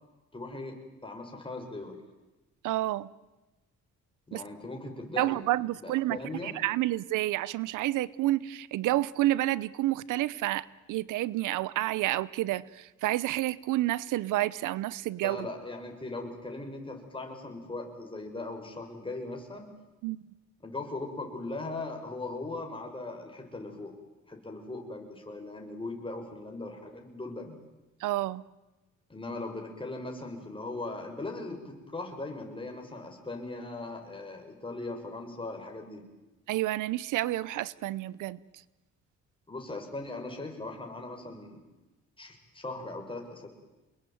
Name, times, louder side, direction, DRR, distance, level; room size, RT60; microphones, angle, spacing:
voice 1, 0.3-2.0 4.3-5.4 5.8-6.5 15.2-19.7 20.6-24.0 24.3-27.6 29.1-36.0 39.5-41.6 42.2-43.5, left 2 dB, 15° left, 2 dB, 7.1 m, -39 dB
voice 2, 2.6-3.1 4.3-4.4 5.2-15.5 20.0-20.2 28.0-28.4 36.5-38.4, right 16 dB, 90° right, 21 dB, 0.9 m, -29 dB
28.0 x 21.5 x 9.4 m, 1.1 s
cardioid pair, 90°, 30 cm